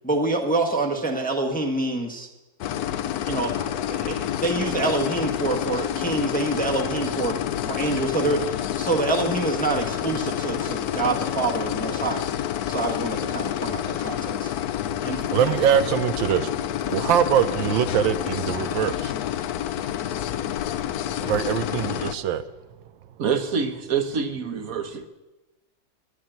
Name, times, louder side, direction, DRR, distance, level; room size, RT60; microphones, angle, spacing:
voice 1, 0.0-2.3 3.3-7.4 7.6-12.2 12.7-14.5 15.0-15.2, right 2 dB, 5° left, 1.0 m, -26 dB
sound 1, 2.6-22.1, left 11 dB, 70° left, 1.0 m, -28 dB
voice 2, 15.0-16.5 16.9-19.1 21.2-22.4, right 9 dB, 90° right, 1.5 m, -23 dB
voice 3, 23.2-25.1, right 6 dB, 55° right, 1.4 m, -26 dB
11.5 x 8.6 x 9.1 m
omnidirectional pair, 2.0 m